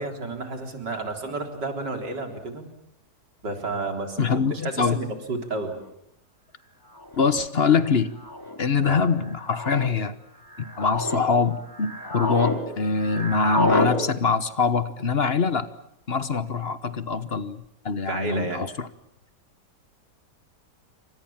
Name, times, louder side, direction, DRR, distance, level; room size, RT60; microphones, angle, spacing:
voice 1, 0.0-2.7 3.4-5.7 8.8-9.0 18.1-18.6, right 2 dB, 85° right, 4 dB, 4.5 m, -31 dB
voice 2, 4.2-5.0 7.2-8.1 8.6-10.1 10.6-15.7 16.1-18.9, left 5 dB, 40° left, 13 dB, 1.3 m, -24 dB
sound 1, 5.8-5.9 7.0-7.2 8.2-8.6 9.4-9.9 10.5-11.2 11.7-12.6 12.8-13.9, left 1 dB, 10° left, 4.2 m, -28 dB
28.5 x 25.0 x 7.3 m, 0.76 s
omnidirectional pair, 1.8 m